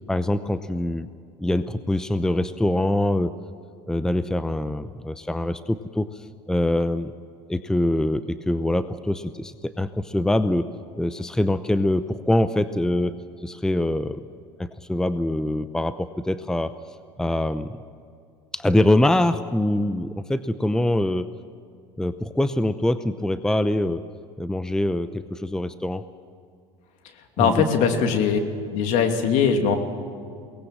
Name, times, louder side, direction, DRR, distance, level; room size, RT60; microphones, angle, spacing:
voice 1, 0.1-1.1 1.4-3.3 3.9-7.1 7.5-10.7 11.0-13.2 13.4-14.3 14.6-16.7 17.2-17.8 18.5-21.3 22.0-24.1 24.4-26.0 27.4-27.6, left 1 dB, 5° left, 12 dB, 0.7 m, -24 dB
voice 2, 27.4-28.4 28.7-29.8, left 6 dB, 60° left, 5 dB, 2.7 m, -20 dB
22.5 x 19.0 x 7.5 m, 2.3 s
supercardioid pair, 90°, 14 cm